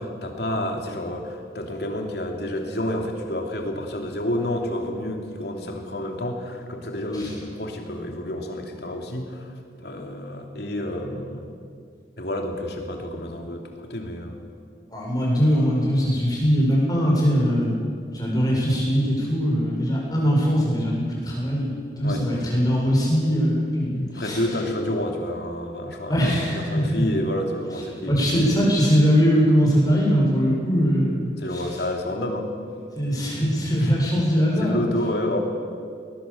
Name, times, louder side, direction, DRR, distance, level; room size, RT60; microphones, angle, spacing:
voice 1, 0.0-11.5 12.2-14.4 22.0-22.2 24.1-28.1 31.4-32.5 34.6-35.4, left 1 dB, 65° left, 2 dB, 3.1 m, -29 dB
voice 2, 14.9-24.4 26.1-27.0 28.1-31.6 32.9-34.8, equal, 20° left, -3 dB, 6.8 m, -21 dB
21.0 x 20.0 x 7.2 m, 2.3 s
head